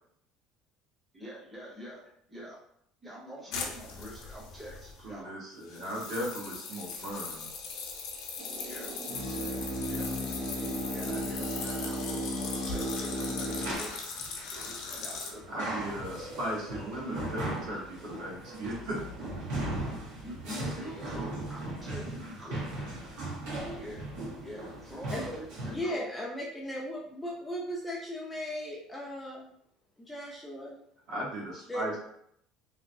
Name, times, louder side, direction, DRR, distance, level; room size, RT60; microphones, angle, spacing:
voice 1, 1.1-2.6 3.0-5.3 8.6-9.0 9.9-10.2 10.9-12.2 12.6-14.0 14.9-15.7 20.0-22.6 23.8-24.1 24.4-26.1, equal, 10° right, -5 dB, 0.8 m, -45 dB
sound 1, 3.5-5.1 5.7-15.3, left 5 dB, 65° left, 0.6 m, -40 dB
voice 2, 5.0-7.5 15.5-19.0 31.1-32.0, equal, 55° right, -5 dB, 1.3 m, -37 dB
sound 2, 8.4-13.7, equal, 70° right, 0.8 m, -35 dB
sound 3, 13.0-25.8, right 1 dB, 85° right, 1.3 m, -38 dB
voice 3, 25.1-25.4 25.7-29.5 30.0-30.8 31.7-31.8, equal, 10° left, -4 dB, 0.4 m, -37 dB
2.9 x 2.7 x 2.6 m, 0.71 s
cardioid pair, 155°, 0 cm